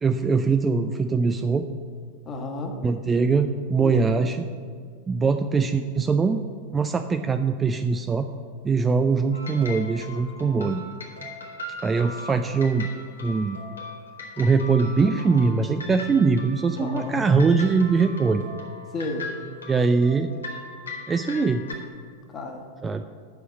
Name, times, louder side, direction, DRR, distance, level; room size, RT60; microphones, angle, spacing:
voice 1, 0.0-1.7 2.8-4.5 5.1-6.4 6.7-8.3 8.6-10.8 11.8-12.9 13.2-13.6 14.4-18.4 19.7-20.3 21.1-21.6 22.8-23.0, right 4 dB, 15° right, 8 dB, 0.4 m, -22 dB
voice 2, 2.2-2.8 3.8-4.3 16.8-17.2 18.9-19.3 22.3-22.7, left 2 dB, 25° left, 3 dB, 1.4 m, -32 dB
sound 1, 9.3-21.7, left 2 dB, 75° left, 1.4 m, -39 dB
8.2 x 6.2 x 7.1 m, 2.1 s
figure-of-eight pair, 90°, 0 cm